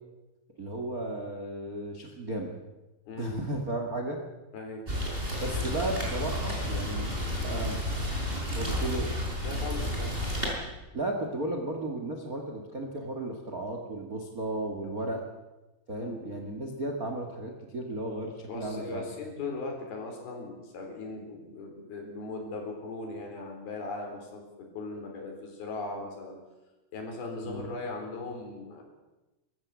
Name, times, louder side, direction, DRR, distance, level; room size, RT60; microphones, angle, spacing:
voice 1, 0.6-2.5 3.2-4.2 5.4-7.2 7.4-7.8 8.5-9.1 10.9-15.2 15.9-19.1 27.4-27.7, right 1 dB, 75° right, 3 dB, 0.8 m, -34 dB
voice 2, 3.1-3.4 4.5-4.9 6.9-7.6 9.4-10.2 16.0-16.3 18.5-26.4 26.9-28.8, left 3 dB, 50° left, 2 dB, 5.8 m, -39 dB
Rain, 4.9-10.5, equal, 10° right, 5.1 m, -31 dB
24.0 x 14.0 x 8.4 m, 1.1 s
omnidirectional pair, 5.6 m